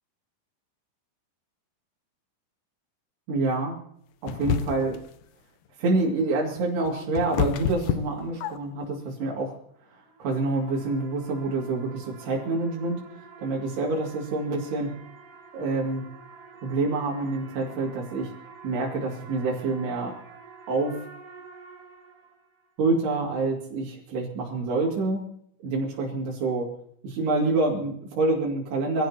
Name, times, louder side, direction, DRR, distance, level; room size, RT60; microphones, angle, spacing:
voice 1, 3.3-3.8 4.2-5.0 5.8-9.6 9.9-13.0 13.4-14.9 15.5-16.0 16.6-18.3 18.6-20.1 20.7-21.1 22.8-25.3 25.6-26.7 27.0-29.1, right 3 dB, 85° right, -3 dB, 4.5 m, -27 dB
sound 1, 4.3-5.0 6.6-8.9, left 9 dB, 80° left, 1.8 m, -28 dB
sound 2, 9.9-22.7, right 4 dB, 45° right, 2.8 m, -48 dB
25.0 x 16.0 x 2.9 m, 0.68 s
omnidirectional pair, 4.5 m